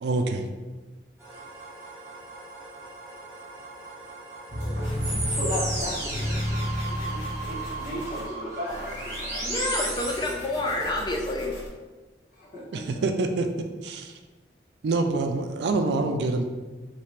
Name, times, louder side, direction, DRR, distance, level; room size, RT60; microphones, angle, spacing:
voice 1, 0.0-0.5 12.7-14.2 14.8-16.4, right 3 dB, 70° right, 5 dB, 0.3 m, -26 dB
sound 1, 1.2-10.3, right 2 dB, 15° right, 0.9 m, -35 dB
sound 2, 4.5-8.1, equal, 55° right, 1.0 m, -31 dB
sound 3, 4.8-8.3 8.7-11.7, equal, 85° left, 0.8 m, -41 dB
voice 2, 5.2-9.7 12.3-13.0, equal, 45° left, -6 dB, 1.0 m, -36 dB
voice 3, 9.4-11.5, left 2 dB, 25° left, 1 dB, 0.4 m, -28 dB
2.9 x 2.8 x 3.2 m, 1.3 s
head